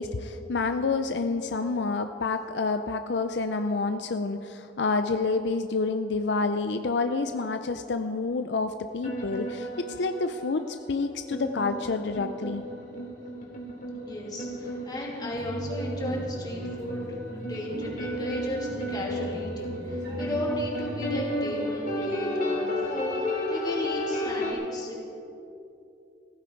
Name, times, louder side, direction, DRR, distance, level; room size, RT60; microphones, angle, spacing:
voice 1, 0.0-9.7 10.0-12.6, left 3 dB, 75° left, 8 dB, 0.5 m, -28 dB
sound 1, 9.0-24.5, left 1 dB, 50° left, 3.0 m, -33 dB
voice 2, 14.0-25.1, left 1 dB, 25° left, -3 dB, 2.8 m, -35 dB
sound 2, 15.3-21.1, equal, 80° right, 3.1 m, -38 dB
15.5 x 15.0 x 4.6 m, 2.7 s
head